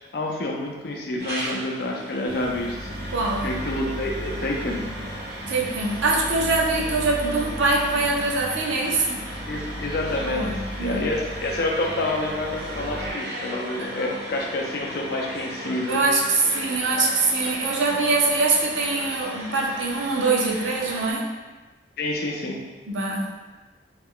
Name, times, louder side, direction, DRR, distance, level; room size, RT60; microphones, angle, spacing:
voice 1, 0.1-2.9 3.4-4.9 9.5-10.5 10.8-16.0 16.6-16.7 22.0-22.6, left 2 dB, 55° left, -1 dB, 0.4 m, -28 dB
sound 1, 1.2-21.1, right 1 dB, 60° right, 1.0 m, -37 dB
sound 2, 2.3-13.1, equal, 30° right, 0.9 m, -36 dB
voice 2, 3.1-3.5 5.5-9.2 10.2-11.0 13.8-13.9 15.9-21.3 22.9-23.3, right 3 dB, 90° right, -2 dB, 0.5 m, -23 dB
2.3 x 2.1 x 3.6 m, 1.2 s
head